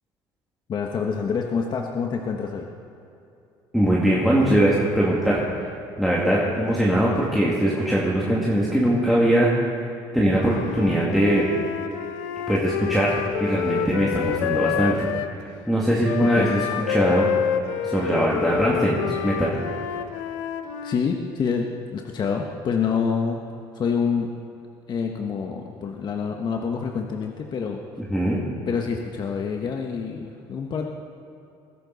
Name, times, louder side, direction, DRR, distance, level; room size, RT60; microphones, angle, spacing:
voice 1, 0.7-2.7 16.2-16.5 20.8-23.4 23.7-24.3 24.9-27.8 28.7-30.9, left 6 dB, 45° left, 2 dB, 1.2 m, -27 dB
voice 2, 3.7-5.7 6.0-9.5 10.1-11.5 12.5-15.1 15.3-17.3 17.8-19.5 28.1-28.4, right 1 dB, ahead, -6 dB, 2.3 m, -21 dB
Wind instrument woodwind instrument, 10.3-15.3 16.0-21.0, left 8 dB, 90° left, 0.7 m, -28 dB
20.5 x 11.5 x 4.1 m, 2.7 s
supercardioid pair, 90°, 10 cm